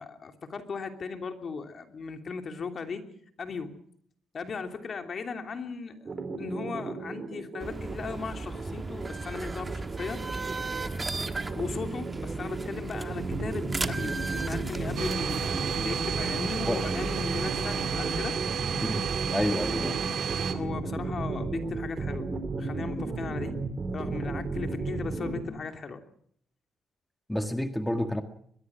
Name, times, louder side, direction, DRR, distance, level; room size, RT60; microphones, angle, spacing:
voice 1, 0.0-3.1 3.4-3.7 4.3-10.3 11.1-18.4 20.5-22.3 22.6-23.5 23.9-26.0, left 5 dB, 45° left, 6 dB, 2.9 m, -37 dB
sound 1, 6.1-25.4, right 3 dB, 40° right, 4.3 m, -34 dB
sound 2, 7.6-18.2, right 3 dB, 25° right, 1.4 m, -36 dB
Domestic sounds home sounds, 15.0-20.5, right 8 dB, 65° right, 2.2 m, -32 dB
voice 2, 19.3-20.0 27.3-28.2, left 1 dB, 5° left, 7 dB, 1.7 m, -29 dB
23.0 x 21.0 x 6.1 m, 0.65 s
cardioid pair, 90°, 0 cm